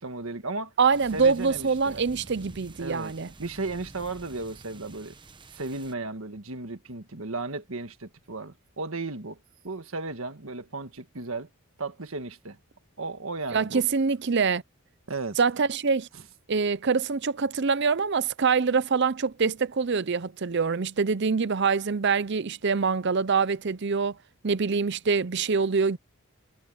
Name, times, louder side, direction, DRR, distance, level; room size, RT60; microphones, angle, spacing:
voice 1, 0.0-0.7 1.1-2.0 2.8-3.1 3.4-5.2 5.5-9.4 9.6-11.5 11.8-12.6 13.0-13.8 15.1-15.4, right 3 dB, 70° right, 1.6 m, -35 dB
voice 2, 0.8-3.3 13.5-14.6 15.4-16.1 16.5-24.2 24.4-26.0, right 5 dB, 50° right, 0.6 m, -25 dB
sound 1, 0.9-5.9, right 2 dB, 20° right, 1.0 m, -48 dB
head